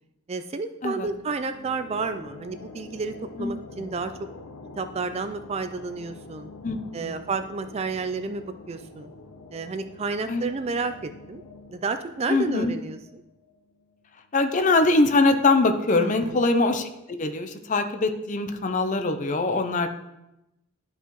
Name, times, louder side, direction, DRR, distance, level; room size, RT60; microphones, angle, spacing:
voice 1, 0.3-4.1 4.8-6.5 6.9-9.1 9.5-11.4 11.7-13.0 16.0-16.4, right 4 dB, 30° right, 9 dB, 0.3 m, -31 dB
sound 1, 1.0-14.4, left 3 dB, 85° left, 0.7 m, -46 dB
voice 2, 6.6-7.2 10.3-10.4 12.3-12.8 14.3-16.9 17.2-19.9, left 3 dB, 35° left, 7 dB, 0.5 m, -23 dB
12.0 x 5.4 x 3.0 m, 0.92 s
head